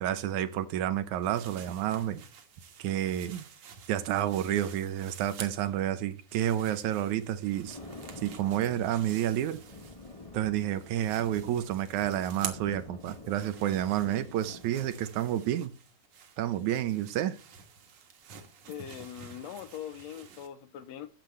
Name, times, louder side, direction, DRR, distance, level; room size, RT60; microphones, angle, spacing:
voice 1, 0.0-2.2 2.8-3.5 3.9-7.8 8.2-9.6 10.3-15.7 16.4-17.4, right 11 dB, 75° right, 2.2 m, -30 dB
sound 1, 1.2-5.8 6.1-10.3 10.6-20.5, right 7 dB, 60° right, 2.4 m, -48 dB
Thunder, 7.3-15.0, left 2 dB, 25° left, 0.7 m, -48 dB
voice 2, 18.7-21.1, left 10 dB, 75° left, 1.7 m, -42 dB
12.0 x 7.8 x 3.3 m
omnidirectional pair, 3.5 m